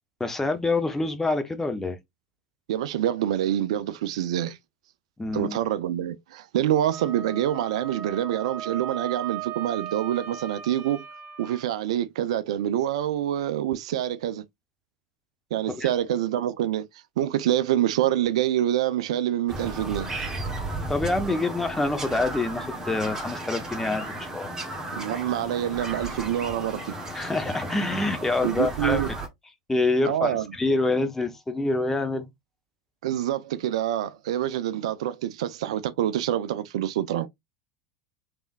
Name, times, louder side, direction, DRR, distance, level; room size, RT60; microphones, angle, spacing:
voice 1, 0.2-2.0 5.2-5.6 15.7-15.9 20.9-24.5 27.1-29.0 29.7-32.3, left 2 dB, 10° left, 0.9 m, -26 dB
voice 2, 2.7-4.6 5.3-11.0 11.4-14.4 15.5-16.9 17.2-20.1 24.9-26.9 28.4-29.1 30.1-30.4 33.0-37.3, right 11 dB, 65° right, 0.4 m, -26 dB
Wind instrument woodwind instrument, 6.9-11.7, right 9 dB, 40° right, 0.7 m, -37 dB
Bird vocalization bird call bird song, 19.5-29.3, right 2 dB, 15° right, 1.3 m, -34 dB
3.5 x 3.3 x 2.5 m
hypercardioid pair, 85°, 3 cm